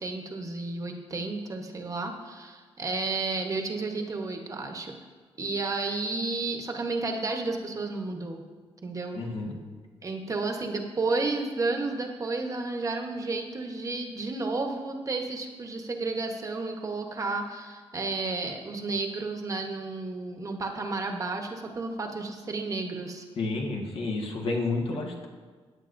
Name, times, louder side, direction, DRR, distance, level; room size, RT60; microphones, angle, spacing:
voice 1, 0.0-4.9 5.4-8.4 8.8-9.2 10.0-23.2, right 3 dB, 35° right, 3 dB, 1.0 m, -32 dB
voice 2, 9.1-9.6 23.4-25.3, left 3 dB, 70° left, 1 dB, 1.5 m, -30 dB
16.0 x 9.6 x 2.6 m, 1.5 s
wide cardioid pair, 160°, 10 cm